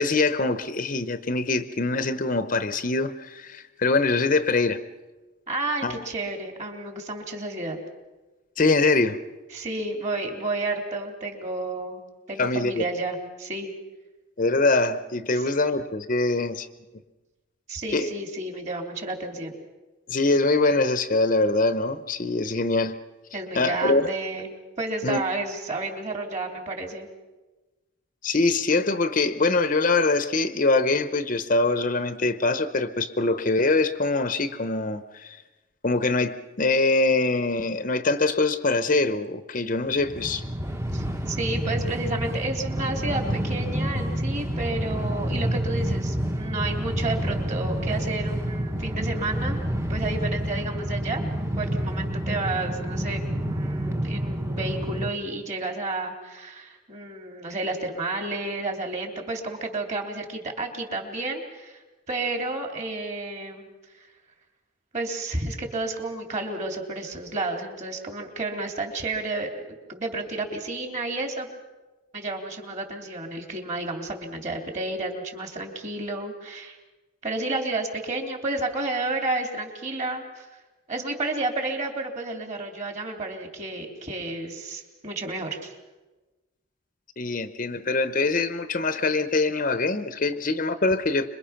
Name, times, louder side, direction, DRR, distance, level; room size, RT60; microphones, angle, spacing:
voice 1, 0.0-4.8 5.8-6.0 8.6-9.2 12.4-12.8 14.4-16.7 17.9-18.1 20.1-22.9 23.5-24.1 25.0-25.2 28.2-35.4 35.8-40.5 87.2-91.3, left 3 dB, 40° left, 10 dB, 0.8 m, -23 dB
voice 2, 5.5-7.8 9.5-12.0 12.3-13.7 15.3-15.5 17.7-19.6 23.3-27.1 40.9-61.8 62.1-63.7 64.0-64.1 64.9-71.5 72.1-76.8 77.2-80.6 80.9-85.7, right 2 dB, 35° right, 3 dB, 3.1 m, -31 dB
Train, 39.9-55.1, equal, 15° right, 1.0 m, -28 dB
26.5 x 22.5 x 5.9 m, 1.2 s
head